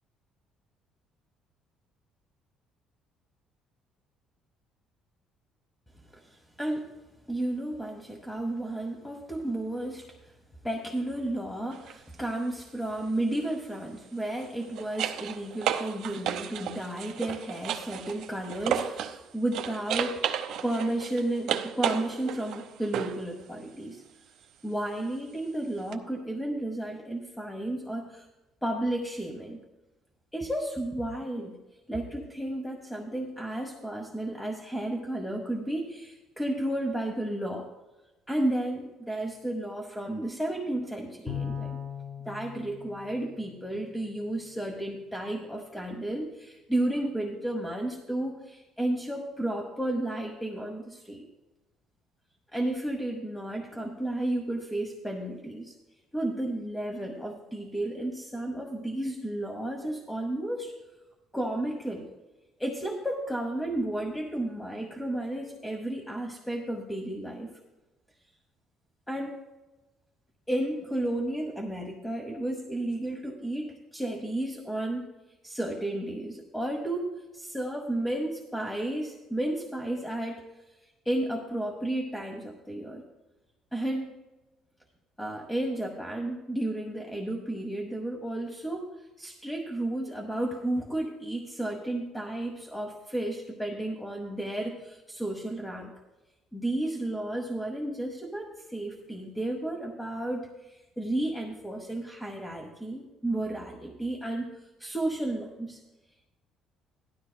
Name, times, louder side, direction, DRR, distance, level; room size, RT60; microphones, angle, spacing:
voice 1, 6.1-6.9 7.3-10.1 10.6-20.2 20.6-24.0 24.6-28.3 28.6-29.6 30.3-31.6 31.9-37.7 38.3-41.7 42.2-51.2 52.5-55.7 56.1-60.7 61.3-62.1 62.6-67.5 69.1-69.4 70.5-75.1 75.4-80.4 81.0-83.0 83.7-84.2 85.2-88.9 89.2-95.9 96.5-104.5 104.8-105.8, right 1 dB, 5° left, 2 dB, 0.9 m, -32 dB
sound 1, 11.7-12.0 14.3-19.2 19.5-23.3 25.9-26.0, right 9 dB, 65° right, 0.8 m, -33 dB
Bowed string instrument, 41.3-43.9, left 7 dB, 20° left, 1.3 m, -38 dB
16.5 x 12.5 x 2.2 m, 1.1 s
cardioid pair, 165°, 0 cm